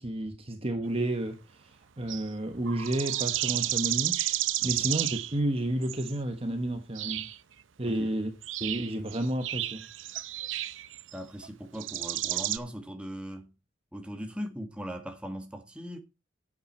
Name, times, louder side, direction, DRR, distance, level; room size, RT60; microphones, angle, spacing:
voice 1, 0.0-1.7 2.0-4.2 4.6-7.3 7.8-8.3 8.6-9.8, right 1 dB, 30° right, 1.2 m, -31 dB
sound 1, 1.0-1.1 2.1-2.3 2.7-5.4 5.8-6.2 7.0-7.4 8.4-11.5 11.8-12.6, right 14 dB, 75° right, 0.7 m, -31 dB
voice 2, 11.1-13.5 13.9-16.0, equal, 5° right, 1.7 m, -39 dB
10.0 x 8.9 x 4.4 m
head